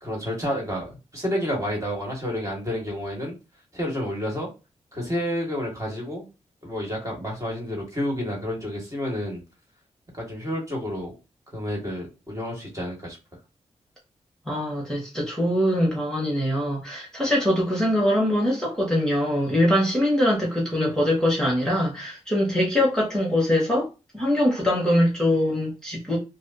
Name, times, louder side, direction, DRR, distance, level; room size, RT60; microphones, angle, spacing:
voice 1, 0.0-3.4 3.7-4.5 4.9-6.3 6.6-9.4 10.2-11.1 11.5-13.2, equal, 25° right, 1.7 m, -30 dB
voice 2, 14.5-23.9 24.1-26.2, left 1 dB, 5° left, 1.4 m, -23 dB
4.7 x 2.0 x 2.6 m
cardioid pair, 65°, 12 cm